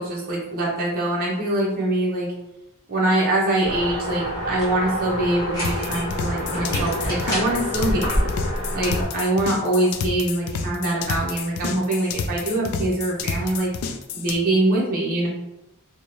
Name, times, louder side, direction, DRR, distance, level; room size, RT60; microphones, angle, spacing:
voice 1, 0.0-2.3 2.9-8.3 8.7-13.7 14.1-15.3, right 1 dB, 40° right, -4 dB, 0.7 m, -23 dB
sound 1, 3.6-9.0, equal, 15° left, 1.1 m, -27 dB
sound 2, 5.6-14.4, left 5 dB, 70° left, 0.3 m, -29 dB
2.6 x 2.0 x 3.0 m, 0.95 s
head